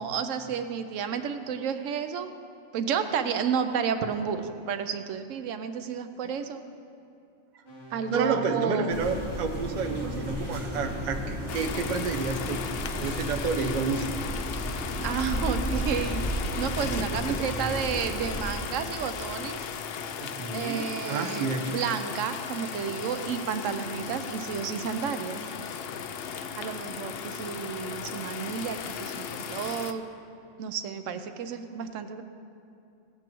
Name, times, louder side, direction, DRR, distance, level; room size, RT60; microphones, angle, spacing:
voice 1, 0.0-2.3 2.7-6.6 7.9-8.9 15.0-16.2 16.6-19.6 20.5-25.4 26.3-30.0 30.6-32.2, right 7 dB, 90° right, 9 dB, 1.0 m, -31 dB
sound 1, 7.7-11.1 15.0-16.2, left 1 dB, 45° left, 1.9 m, -41 dB
voice 2, 8.1-14.1 16.8-17.4 20.2-21.8, right 4 dB, 45° right, 5 dB, 0.7 m, -30 dB
sound 2, 8.9-18.6, right 1 dB, 15° right, 1.6 m, -34 dB
sound 3, 11.5-29.9, left 7 dB, 65° left, 0.7 m, -36 dB
16.0 x 8.2 x 3.0 m, 2.6 s
omnidirectional pair, 1.3 m